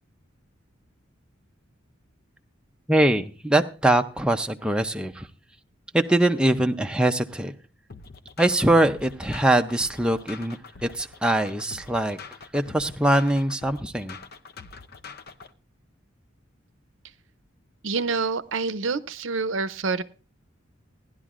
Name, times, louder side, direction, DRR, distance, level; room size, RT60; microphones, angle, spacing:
voice 1, 2.9-5.3 5.9-7.5 8.4-12.2 12.5-14.2, right 1 dB, 5° right, 5 dB, 0.5 m, -22 dB
sound 1, 7.9-15.5, left 4 dB, 50° left, 0.7 m, -44 dB
voice 2, 17.8-20.0, right 4 dB, 70° right, 13 dB, 0.7 m, -27 dB
17.5 x 11.0 x 2.5 m, 0.35 s
head